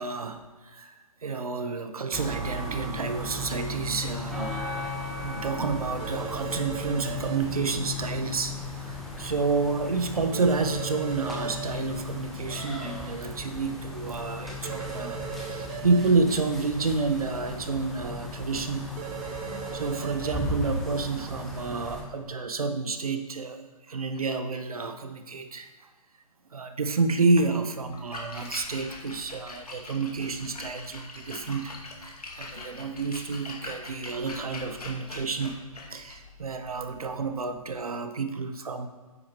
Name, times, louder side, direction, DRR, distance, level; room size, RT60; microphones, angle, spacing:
voice 1, 0.0-4.6 5.2-18.9 19.4-25.7 26.5-35.6 35.9-38.9, right 4 dB, 70° right, 8 dB, 1.1 m, -29 dB
sound 1, 2.1-22.0, left 2 dB, ahead, 1.2 m, -36 dB
sound 2, 6.0-7.4 10.3-11.7 14.6-16.0 19.0-20.3, right 11 dB, 25° right, 0.7 m, -37 dB
Splash splatter, 27.9-37.7, left 3 dB, 80° left, 2.2 m, -43 dB
9.6 x 8.5 x 3.0 m, 1.3 s
figure-of-eight pair, 140°, 19 cm